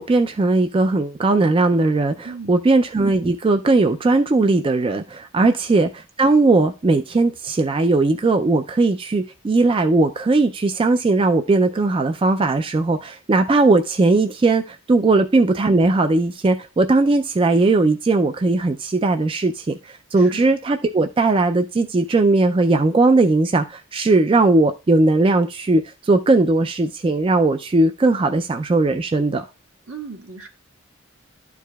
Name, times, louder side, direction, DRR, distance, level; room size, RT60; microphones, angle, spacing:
voice 1, 0.0-29.4, right 3 dB, 25° right, 0.3 m, -18 dB
voice 2, 2.2-2.7 5.4-5.6 20.2-20.6 29.9-30.5, right 4 dB, 75° right, 1.7 m, -37 dB
12.0 x 4.7 x 2.2 m
head